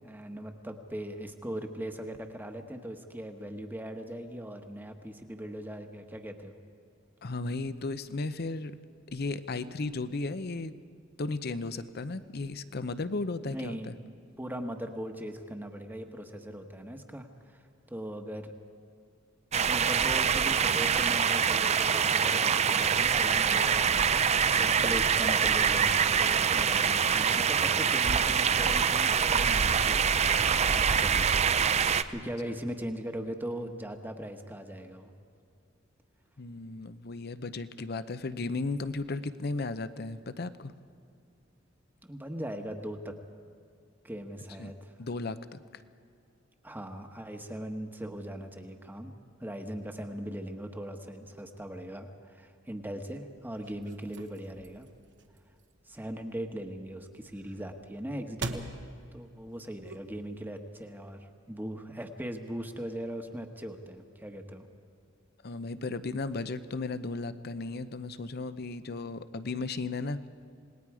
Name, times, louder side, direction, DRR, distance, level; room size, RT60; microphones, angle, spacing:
voice 1, 0.0-6.6 13.5-13.9 14.4-17.6 17.9-18.5 19.6-24.0 24.5-31.3 31.7-35.1 42.0-43.2 44.0-44.9 46.6-49.1 49.4-54.9 55.9-58.7 59.1-64.7, right 1 dB, 10° right, 5 dB, 1.2 m, -39 dB
voice 2, 7.2-8.7 9.1-10.7 11.2-13.9 36.4-40.7 44.6-44.7 45.0-45.8 65.4-70.2, left 3 dB, 55° left, 12 dB, 0.7 m, -35 dB
sound 1, 19.5-32.0, right 7 dB, 35° right, 0.5 m, -25 dB
sound 2, 53.4-60.4, right 3 dB, 65° right, 1.2 m, -45 dB
27.5 x 19.5 x 4.9 m, 2.4 s
head